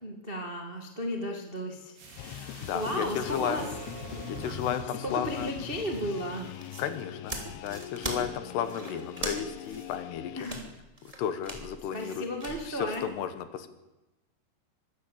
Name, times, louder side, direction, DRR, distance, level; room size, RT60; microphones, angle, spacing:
voice 1, 0.0-3.6 5.0-6.5 10.4-10.7 11.9-13.1, equal, 75° right, 3 dB, 0.5 m, -35 dB
sound 1, 2.0-7.0 7.3-7.4, right 4 dB, 55° right, 4.0 m, -46 dB
sound 2, 2.2-10.4, left 12 dB, 90° left, 3.2 m, -42 dB
voice 2, 2.6-3.6 4.3-5.5 6.8-10.5 11.2-12.3 12.7-13.7, left 9 dB, 70° left, 11 dB, 3.2 m, -33 dB
sound 3, 6.6-13.0, right 1 dB, 10° right, 2.1 m, -40 dB
24.0 x 13.0 x 8.6 m, 1.0 s
omnidirectional pair, 5.2 m